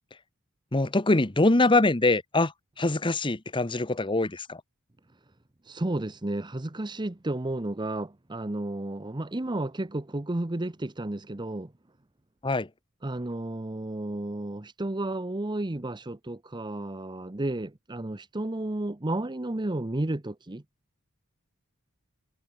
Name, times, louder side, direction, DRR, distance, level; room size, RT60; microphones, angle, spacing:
voice 1, 0.7-4.6 12.4-12.7, left 2 dB, 20° left, 1.1 m, -24 dB
voice 2, 5.7-11.7 13.0-20.6, right 1 dB, 20° right, 0.8 m, -32 dB
head